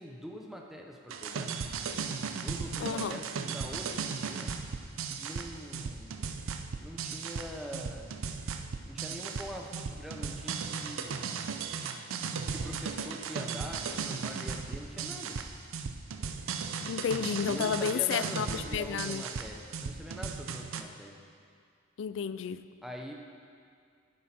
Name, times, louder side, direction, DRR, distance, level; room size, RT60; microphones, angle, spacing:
voice 1, 0.0-1.5 2.3-4.5 5.2-6.2 6.8-8.2 8.9-11.2 12.5-15.4 17.5-21.2 22.8-23.1, equal, ahead, 0 dB, 0.7 m, -44 dB
sound 1, 1.1-20.8, right 5 dB, 85° right, 0.5 m, -36 dB
voice 2, 2.8-3.2 16.8-19.2 22.0-22.6, left 7 dB, 65° left, 13 dB, 0.3 m, -31 dB
10.0 x 7.8 x 4.3 m, 2.2 s
head